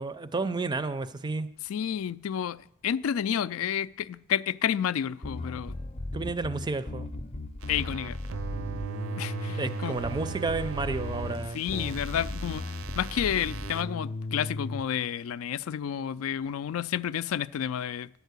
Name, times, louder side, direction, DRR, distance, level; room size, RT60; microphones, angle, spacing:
voice 1, 0.0-1.5 6.1-7.1 9.6-12.0, right 3 dB, 20° right, 0.4 m, -31 dB
voice 2, 1.7-5.8 7.7-8.2 9.2-10.0 11.5-18.1, left 9 dB, 80° left, 0.3 m, -30 dB
Bass guitar, 5.2-14.8, left 2 dB, 30° left, 0.6 m, -36 dB
sound 1, 7.6-13.8, right 8 dB, 80° right, 0.6 m, -39 dB
11.0 x 4.6 x 8.1 m
head